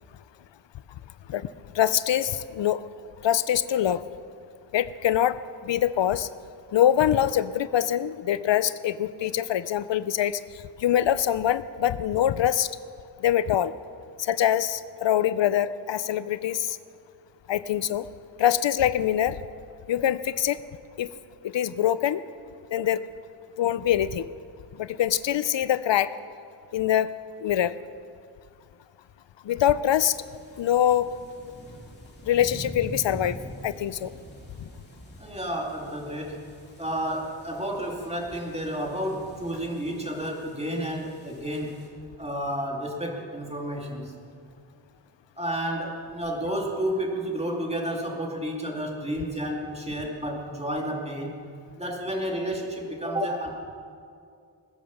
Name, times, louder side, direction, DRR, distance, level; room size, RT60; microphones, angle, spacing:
voice 1, 1.7-2.8 3.2-4.0 4.7-6.3 6.7-12.7 13.2-13.7 14.2-16.8 17.5-18.1 18.4-19.4 19.9-20.6 21.0-21.1 21.4-22.2 22.7-23.0 23.6-24.3 24.8-26.1 26.7-27.1 27.4-27.7 29.4-30.2 30.6-31.1 32.2-33.4 33.6-34.1, left 11 dB, 85° left, 15 dB, 0.6 m, -24 dB
sound 1, 29.9-41.9, equal, 25° left, 2.9 m, -45 dB
voice 2, 35.2-36.4 36.8-41.8 42.2-44.1 45.4-51.4 51.8-53.5, right 1 dB, 15° right, -1 dB, 2.5 m, -31 dB
19.5 x 10.5 x 7.1 m, 2.4 s
wide cardioid pair, 130°, 43 cm